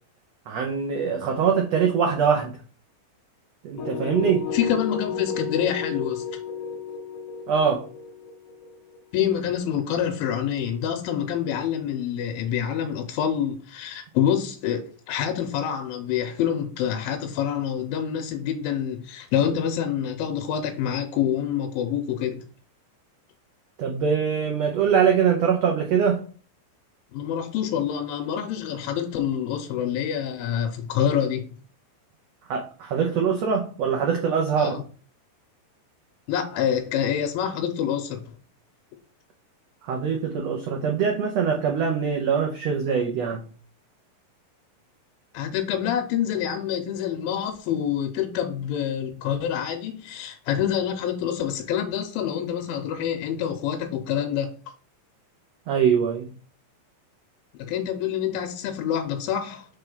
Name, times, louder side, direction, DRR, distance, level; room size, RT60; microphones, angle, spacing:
voice 1, 0.5-2.6 3.6-4.5 7.5-7.8 23.8-26.2 32.5-34.8 39.8-43.4 55.7-56.3, right 6 dB, 80° right, 1.5 m, -23 dB
sound 1, 3.8-9.6, left 6 dB, 55° left, 1.7 m, -32 dB
voice 2, 4.5-6.4 9.1-22.4 27.1-31.5 34.6-34.8 36.3-38.3 45.3-54.5 57.6-59.7, left 9 dB, 85° left, 2.5 m, -27 dB
5.6 x 3.5 x 5.3 m
omnidirectional pair, 4.1 m